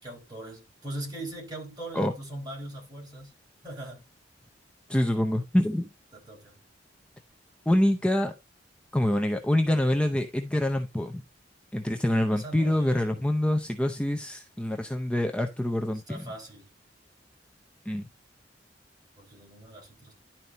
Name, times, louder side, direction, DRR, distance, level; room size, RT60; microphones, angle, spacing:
voice 1, 0.0-3.3 3.6-4.1 6.1-6.6 12.3-13.2 16.1-16.7 19.2-20.1, right 1 dB, 25° right, 4.1 m, -40 dB
voice 2, 4.9-5.9 7.7-8.3 8.9-11.2 11.7-16.3 17.9-18.1, left 1 dB, 5° left, 0.6 m, -26 dB
11.0 x 4.5 x 4.0 m
head